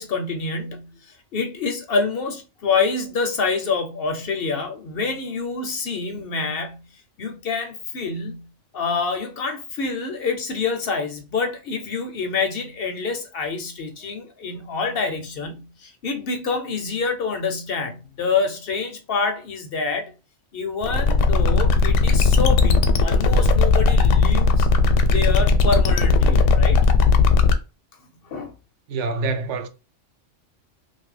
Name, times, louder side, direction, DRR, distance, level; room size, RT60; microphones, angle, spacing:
voice 1, 0.0-6.8 7.2-8.5 8.7-20.1 20.5-24.7 25.1-26.8 28.2-28.5, left 4 dB, 60° left, 0.7 m, -27 dB
sound 1, 20.8-27.6, left 4 dB, 85° left, 0.9 m, -17 dB
voice 2, 28.9-29.7, right 3 dB, 75° right, 0.9 m, -26 dB
2.7 x 2.5 x 3.1 m
omnidirectional pair, 1.3 m